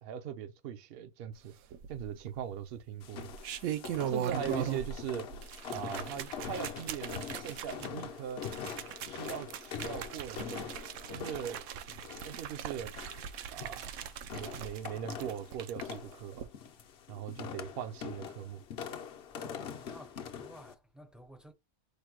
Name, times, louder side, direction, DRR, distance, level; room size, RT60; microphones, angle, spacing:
voice 1, 0.0-1.6 1.9-3.3 4.1-5.3 5.7-8.4 9.0-10.7 11.1-11.6 12.2-12.9 13.5-13.9 14.2-16.5 17.1-18.6, right 9 dB, 55° right, 0.7 m, -40 dB
sound 1, 1.7-2.4 3.2-5.0 5.3-15.9 16.3-16.4, right 9 dB, 80° right, 1.0 m, -40 dB
sound 2, 3.0-20.7, left 7 dB, 60° left, 0.8 m, -44 dB
voice 2, 19.3-21.5, equal, ahead, 0.5 m, -54 dB
5.1 x 2.2 x 4.5 m
omnidirectional pair, 1.5 m